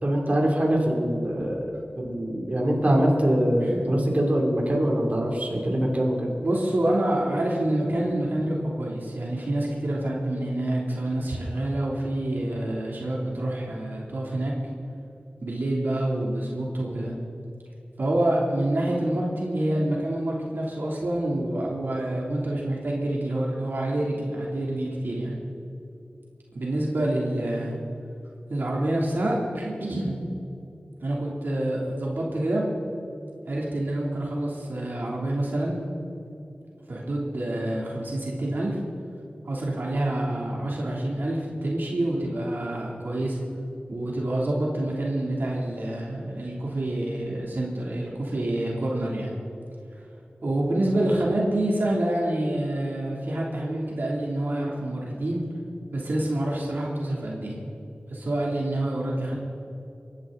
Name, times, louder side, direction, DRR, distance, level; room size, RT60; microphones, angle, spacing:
voice 1, 0.0-1.7 2.0-6.3, right 1 dB, 50° right, -1 dB, 3.1 m, -23 dB
voice 2, 6.4-14.5 15.4-17.1 18.0-25.4 26.5-27.8 28.5-30.2 31.0-32.6 33.5-35.8 36.9-38.8 39.4-43.4 43.9-49.4 50.4-55.4 55.9-57.6 58.1-59.4, right 1 dB, 80° right, -3 dB, 2.9 m, -27 dB
25.0 x 11.5 x 3.9 m, 2.8 s
wide cardioid pair, 55°, 3 cm